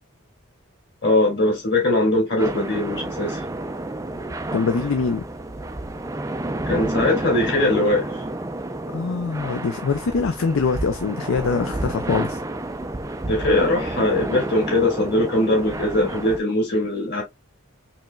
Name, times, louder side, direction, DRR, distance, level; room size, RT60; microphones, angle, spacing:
voice 1, 1.0-3.4 6.7-8.1 13.2-17.2, left 2 dB, 50° left, 2.2 m, -21 dB
sound 1, 2.4-16.4, right 2 dB, 15° right, 0.3 m, -30 dB
voice 2, 4.5-5.2 8.9-12.4, left 5 dB, 65° left, 0.4 m, -23 dB
4.7 x 3.1 x 2.2 m
head